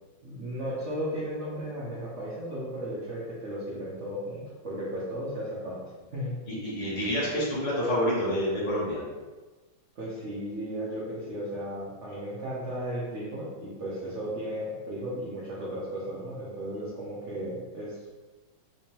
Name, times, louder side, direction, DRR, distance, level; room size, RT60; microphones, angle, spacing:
voice 1, 0.2-5.8 6.1-6.3 10.0-18.1, equal, 50° right, -9 dB, 0.9 m, -35 dB
voice 2, 6.5-9.0, equal, 45° left, -5 dB, 1.2 m, -28 dB
3.4 x 3.3 x 2.9 m, 1.2 s
omnidirectional pair, 2.2 m